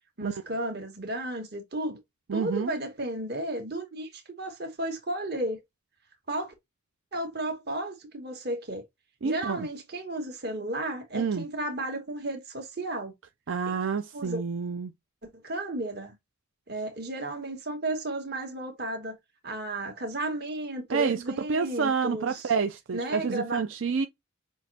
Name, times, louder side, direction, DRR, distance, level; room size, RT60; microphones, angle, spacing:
voice 1, 0.2-2.0 2.3-5.6 6.3-6.5 7.1-8.8 9.2-13.1 14.1-14.4 15.3-16.1 16.7-19.2 19.4-22.5 22.9-23.6, right 1 dB, 50° right, 1.6 m, -33 dB
voice 2, 2.3-2.7 9.2-9.7 11.1-11.4 13.5-14.9 20.9-21.2 21.5-24.1, right 5 dB, 75° right, 0.5 m, -28 dB
6.2 x 3.0 x 2.8 m
head